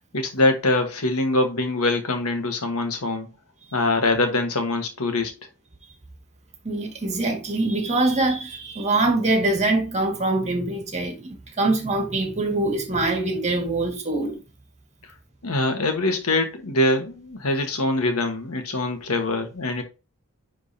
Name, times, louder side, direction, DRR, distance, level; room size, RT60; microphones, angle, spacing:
voice 1, 0.1-3.3 3.7-5.3 15.4-19.8, left 2 dB, 75° left, 1.4 m, -23 dB
voice 2, 6.6-14.4, right 2 dB, 30° right, 1.9 m, -24 dB
10.0 x 3.7 x 2.8 m
head